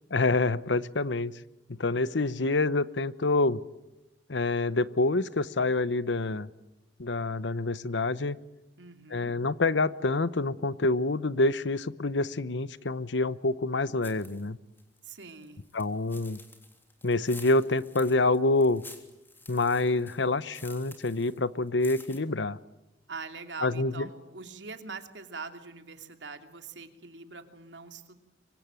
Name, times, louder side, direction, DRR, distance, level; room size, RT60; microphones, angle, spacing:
voice 1, 0.1-1.3 1.8-3.6 4.3-6.5 7.0-8.4 9.1-14.6 15.7-16.4 17.0-18.8 19.5-22.6 23.6-24.1, left 2 dB, 85° left, 16 dB, 1.0 m, -27 dB
voice 2, 8.8-9.3 15.0-15.6 23.1-28.2, right 4 dB, 85° right, 6 dB, 2.8 m, -43 dB
sound 1, 14.0-14.5 14.8-21.4 21.7-22.2, left 3 dB, 10° left, 3.4 m, -50 dB
25.5 x 24.5 x 9.1 m, 0.96 s
head